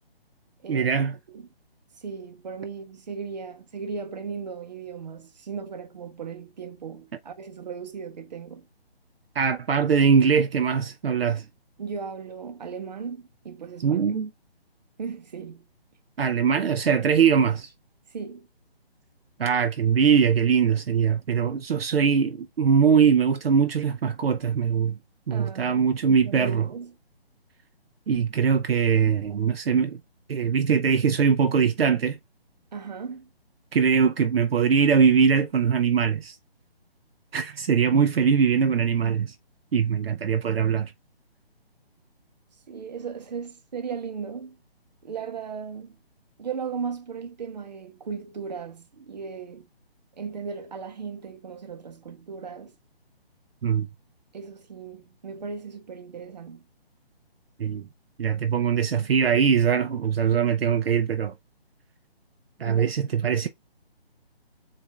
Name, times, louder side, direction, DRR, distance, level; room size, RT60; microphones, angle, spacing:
voice 1, 0.7-1.1 9.4-11.5 13.8-14.3 16.2-17.7 19.4-25.0 25.3-26.7 28.1-30.0 30.3-32.2 33.7-36.4 37.3-39.3 39.7-40.9 53.6-53.9 57.6-57.8 58.2-61.3 62.6-63.5, right 6 dB, 70° right, 0.6 m, -22 dB
voice 2, 2.0-8.7 11.8-14.1 15.0-15.6 18.1-18.5 25.3-25.8 26.1-26.9 32.7-33.3 42.7-44.6 45.0-46.0 46.4-49.7 50.2-52.7 54.3-56.6 62.7-62.8, right 6 dB, 45° right, 0.9 m, -36 dB
7.3 x 2.6 x 2.3 m
hypercardioid pair, 160°, 31 cm